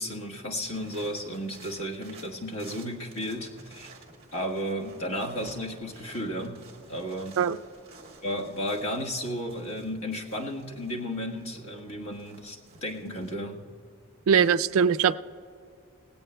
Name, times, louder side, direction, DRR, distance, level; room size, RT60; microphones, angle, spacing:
voice 1, 0.0-3.9 4.3-6.6 6.9-7.4 8.2-13.6, equal, 80° left, 0 dB, 1.4 m, -33 dB
sound 1, 0.6-13.3, right 3 dB, 30° right, 1.8 m, -52 dB
voice 2, 14.3-15.2, right 7 dB, 75° right, 14 dB, 0.3 m, -21 dB
19.0 x 17.0 x 2.2 m, 2.3 s
head